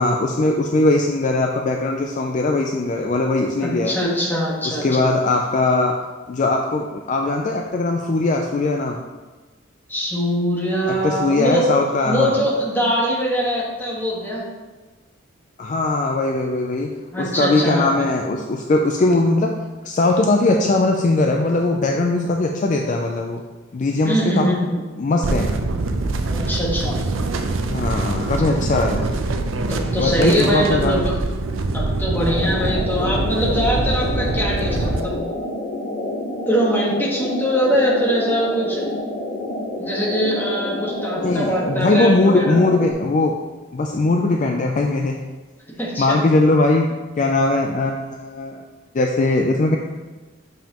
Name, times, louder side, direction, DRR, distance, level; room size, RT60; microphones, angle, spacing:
voice 1, 0.0-4.0 4.6-6.0 6.3-9.0 10.9-12.4 15.6-16.9 17.2-19.5 19.8-23.4 23.7-24.6 25.0-25.5 27.7-29.1 30.0-31.1 41.2-43.3 43.7-45.2 46.0-46.9 47.2-48.6 48.9-49.8, left 2 dB, 40° left, 2 dB, 0.4 m, -20 dB
voice 2, 3.6-4.8 9.9-11.7 12.0-14.4 17.1-18.1 24.0-24.8 26.3-27.0 28.8-28.9 29.7-31.1 31.7-35.2 36.5-38.8 39.8-42.6 45.8-46.2, equal, 10° left, -5 dB, 1.3 m, -22 dB
sound 1, 25.2-35.0, right 2 dB, 80° right, 0.6 m, -24 dB
sound 2, 32.1-42.9, left 1 dB, 85° left, 1.1 m, -28 dB
7.2 x 5.5 x 2.9 m, 1.3 s
head